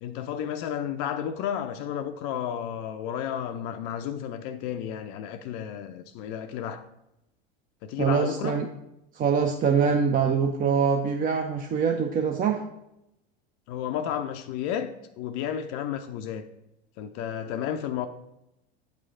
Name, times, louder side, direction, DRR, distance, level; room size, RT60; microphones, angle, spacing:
voice 1, 0.0-6.8 7.8-8.6 13.7-16.5 17.0-18.1, left 9 dB, 50° left, 0.4 m, -32 dB
voice 2, 8.0-8.7 9.1-12.6, right 6 dB, 30° right, 0.5 m, -24 dB
8.0 x 3.2 x 3.6 m
hypercardioid pair, 90°, 31 cm